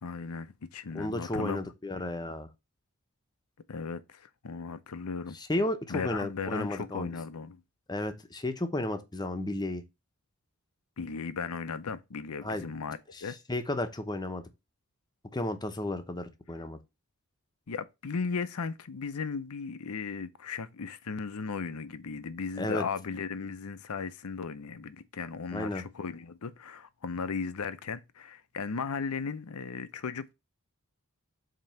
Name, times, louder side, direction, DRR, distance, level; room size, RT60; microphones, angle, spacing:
voice 1, 0.0-1.6 3.7-5.4 5.9-7.6 11.0-13.4 17.7-30.3, left 5 dB, 75° left, 0.6 m, -36 dB
voice 2, 0.9-2.5 5.3-7.1 7.9-9.8 12.4-12.6 13.1-14.4 15.3-16.8 22.6-22.8 25.5-25.8, left 1 dB, 20° left, 0.8 m, -33 dB
7.4 x 3.0 x 5.5 m
head